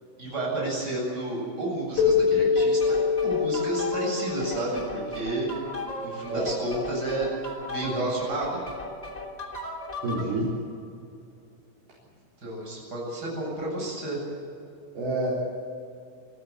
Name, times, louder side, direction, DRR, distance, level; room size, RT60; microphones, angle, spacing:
voice 1, 0.2-3.0 3.2-5.5 6.0-7.3 7.7-8.6 12.4-14.2, right 2 dB, 20° right, -3 dB, 8.1 m, -31 dB
Keyboard (musical), 2.0-5.2, left 5 dB, 50° left, 6.9 m, -24 dB
sound 1, 2.6-10.3, left 1 dB, 15° left, 1.3 m, -37 dB
voice 2, 10.0-10.5 15.0-15.3, right 2 dB, 50° right, -6 dB, 5.5 m, -28 dB
26.0 x 14.5 x 8.3 m, 2.6 s
omnidirectional pair, 5.7 m